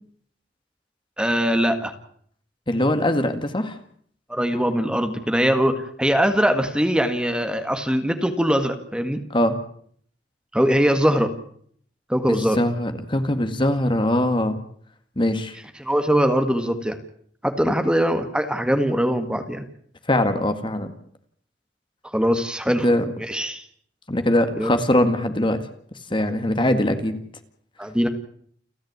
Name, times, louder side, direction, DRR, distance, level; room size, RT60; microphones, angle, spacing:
voice 1, 1.2-1.9 4.3-9.2 10.5-11.3 12.1-12.6 15.8-17.0 17.4-19.7 22.0-22.9 23.2-23.6 24.5-24.7 27.8-28.1, equal, 5° right, 7 dB, 1.8 m, -21 dB
voice 2, 2.7-3.8 9.3-9.6 12.3-14.6 15.2-15.6 17.7-17.8 20.1-20.9 22.8-23.0 24.1-25.6 26.1-27.2, left 1 dB, 25° left, 8 dB, 1.9 m, -21 dB
29.5 x 10.5 x 9.6 m, 0.62 s
head